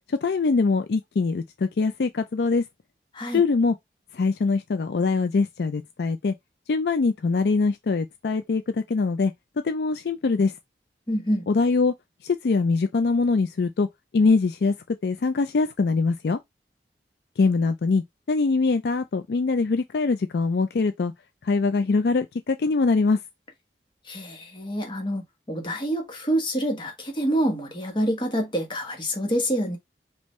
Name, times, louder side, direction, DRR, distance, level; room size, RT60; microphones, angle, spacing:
voice 1, 0.2-2.6 3.3-3.7 4.1-6.3 6.7-9.3 9.6-10.5 11.5-11.9 12.2-13.9 14.1-14.7 15.0-16.4 17.4-21.1 21.4-23.2, left 4 dB, 70° left, 0.4 m, -23 dB
voice 2, 11.1-11.5 24.1-29.8, equal, 25° left, 1.2 m, -27 dB
5.3 x 2.6 x 3.1 m
head